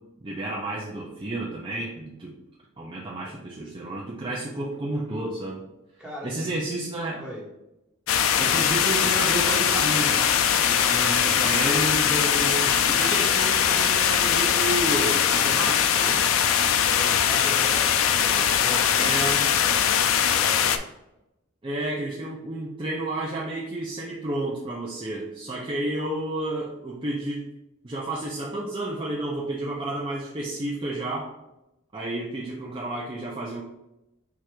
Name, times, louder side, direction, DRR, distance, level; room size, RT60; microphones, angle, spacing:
voice 1, 0.2-2.3 2.8-5.6 6.2-7.2 8.4-10.3 10.6-16.2 19.0-19.5 21.6-27.5 27.8-31.3 31.9-33.6, right 1 dB, 25° right, -4 dB, 0.5 m, -31 dB
voice 2, 6.0-6.6 7.2-7.4 16.9-19.1 20.0-20.8, equal, 5° right, -5 dB, 1.2 m, -39 dB
sound 1, 8.1-20.8, left 8 dB, 85° left, 0.4 m, -21 dB
4.7 x 2.5 x 4.4 m, 0.91 s
head